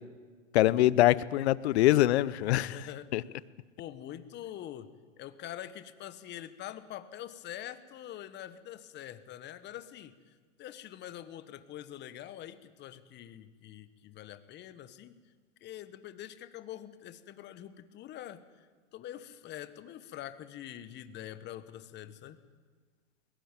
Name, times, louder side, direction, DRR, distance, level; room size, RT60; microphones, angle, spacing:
voice 1, 0.5-2.9 3.1-3.2, left 15 dB, 60° left, 19 dB, 0.9 m, -24 dB
voice 2, 2.5-3.1 3.8-4.9 5.2-15.2 15.6-18.7 18.9-22.4, left 12 dB, 30° left, 12 dB, 1.4 m, -45 dB
22.0 x 19.0 x 9.1 m, 1.5 s
hypercardioid pair, 120°, 38 cm